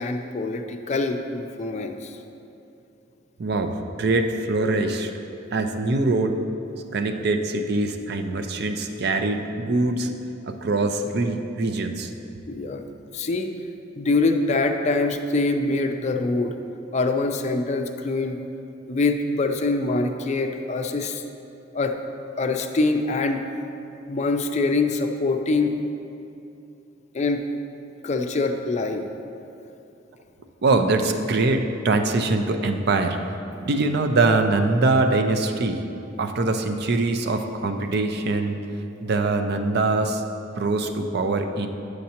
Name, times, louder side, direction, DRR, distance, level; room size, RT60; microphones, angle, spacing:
voice 1, 0.0-2.2 12.5-12.8 13.1-13.5 14.0-16.5 16.9-18.4 18.9-21.2 21.7-21.9 22.4-23.4 24.1-25.7 27.1-27.4 28.0-29.0, left 3 dB, 35° left, 5 dB, 0.4 m, -24 dB
voice 2, 3.4-5.1 5.5-6.4 6.9-10.1 10.4-12.1 30.6-33.2 33.6-35.8 36.2-38.6 39.0-40.2 40.6-41.7, right 3 dB, 60° right, 5 dB, 0.5 m, -23 dB
9.3 x 6.4 x 2.9 m, 2.8 s
head